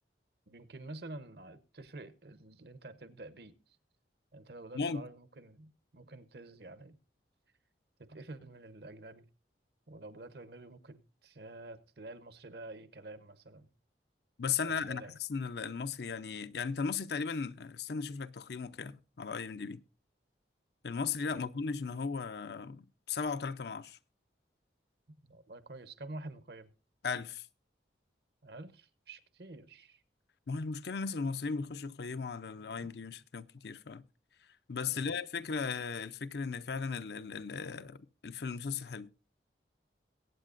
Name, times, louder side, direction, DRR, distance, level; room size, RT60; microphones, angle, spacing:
voice 1, 0.5-3.8 4.3-7.0 8.0-9.3 9.9-13.7 14.6-15.2 21.3-21.5 25.3-26.7 28.4-30.0 34.9-35.1, right 2 dB, 60° right, 0.9 m, -48 dB
voice 2, 4.7-5.1 14.4-19.8 20.8-24.0 27.0-27.5 30.5-34.0 34.7-38.0 38.2-39.1, left 5 dB, 65° left, 0.5 m, -36 dB
22.0 x 8.9 x 2.5 m
head